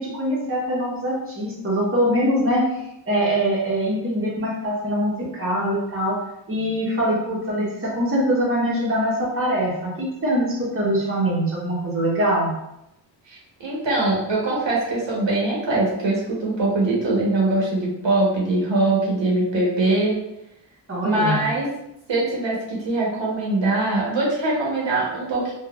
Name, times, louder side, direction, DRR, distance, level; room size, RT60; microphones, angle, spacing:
voice 1, 0.0-2.7 3.1-6.2 6.5-12.5 20.9-21.5, equal, 30° right, -5 dB, 0.9 m, -23 dB
voice 2, 13.3-20.2 21.0-21.7 22.1-25.5, right 2 dB, 70° right, -4 dB, 1.0 m, -22 dB
3.8 x 2.4 x 2.3 m, 0.85 s
wide cardioid pair, 120°, 46 cm